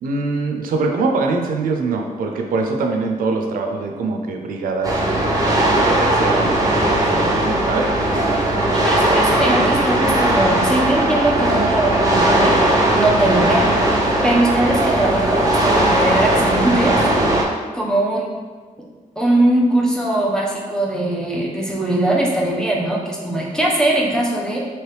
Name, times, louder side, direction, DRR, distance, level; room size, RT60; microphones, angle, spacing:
voice 1, 0.0-5.4 5.7-7.9, right 3 dB, 85° right, 3 dB, 0.4 m, -23 dB
sound 1, 4.8-17.4, right 1 dB, 25° right, 0.7 m, -18 dB
voice 2, 8.7-12.6 12.9-13.7 14.2-16.9 17.7-18.4 19.2-24.6, right 1 dB, 5° left, -3 dB, 0.7 m, -20 dB
3.0 x 2.9 x 3.2 m, 1.5 s
cardioid pair, 95°, 14 cm